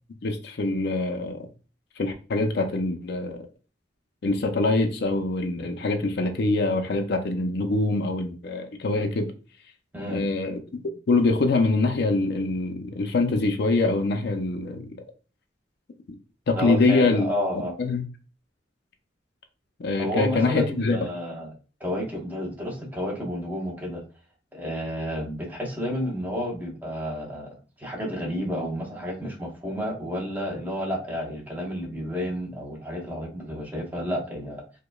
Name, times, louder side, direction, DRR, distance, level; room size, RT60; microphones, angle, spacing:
voice 1, 0.2-1.5 2.0-3.4 4.2-9.3 10.1-10.8 11.1-15.0 16.5-17.3 17.6-18.0 19.8-21.0, left 3 dB, 60° left, 0.5 m, -24 dB
voice 2, 16.5-17.7 20.0-21.5 21.8-24.0 24.5-34.6, equal, 10° right, 0.7 m, -31 dB
4.8 x 2.1 x 2.3 m
head